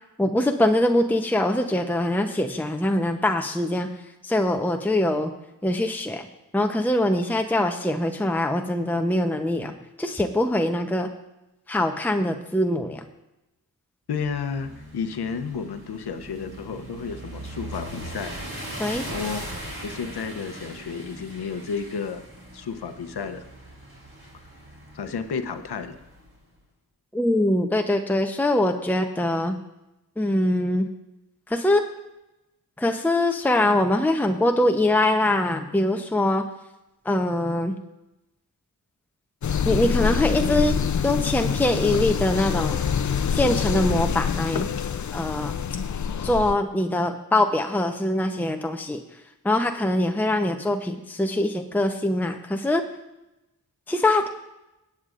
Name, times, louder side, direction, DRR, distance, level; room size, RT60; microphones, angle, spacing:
voice 1, 0.2-3.9 4.2-5.3 5.6-6.3 6.5-11.1 11.7-13.0 18.8-19.0 27.1-29.6 30.2-30.9 31.5-31.8 32.8-36.4 37.0-37.7 39.6-40.8 41.0-42.8 43.3-44.7 45.1-45.6 46.2-49.0 49.4-52.8 53.9-54.3, left 1 dB, 5° left, 4 dB, 0.8 m, -23 dB
voice 2, 14.1-18.3 19.1-19.4 19.8-22.2 22.5-23.4 24.9-26.0, left 5 dB, 85° left, 9 dB, 0.8 m, -32 dB
sound 1, 14.2-26.3, right 1 dB, 35° right, 3.5 m, -39 dB
sound 2, 39.4-46.5, left 7 dB, 50° left, 0.6 m, -26 dB
17.5 x 8.5 x 2.5 m, 0.95 s
cardioid pair, 50°, 38 cm